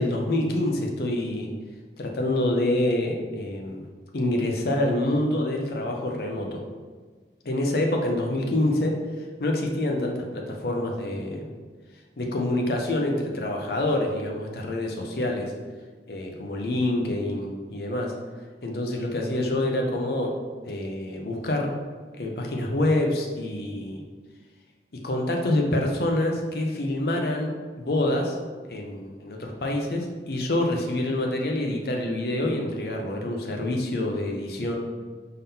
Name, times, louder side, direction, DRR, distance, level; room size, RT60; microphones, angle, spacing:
voice 1, 0.0-1.5 2.0-3.9 4.1-6.6 7.4-8.9 9.4-11.5 12.2-15.5 16.1-18.1 18.6-20.3 20.7-21.7 22.1-24.0 25.0-28.4 28.7-34.8, left 1 dB, 60° left, 1 dB, 0.6 m, -26 dB
3.7 x 3.6 x 2.7 m, 1.5 s
head